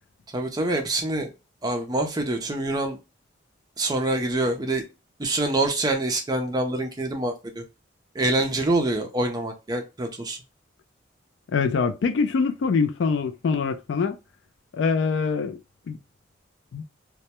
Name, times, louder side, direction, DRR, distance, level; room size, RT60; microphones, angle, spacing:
voice 1, 0.3-1.3 1.6-3.0 3.8-4.8 5.2-7.6 8.1-10.4, right 2 dB, 20° right, 0.5 m, -25 dB
voice 2, 11.5-14.1 14.7-15.6 15.9-16.0 16.7-16.8, left 5 dB, 70° left, 0.3 m, -24 dB
2.2 x 2.1 x 2.8 m
head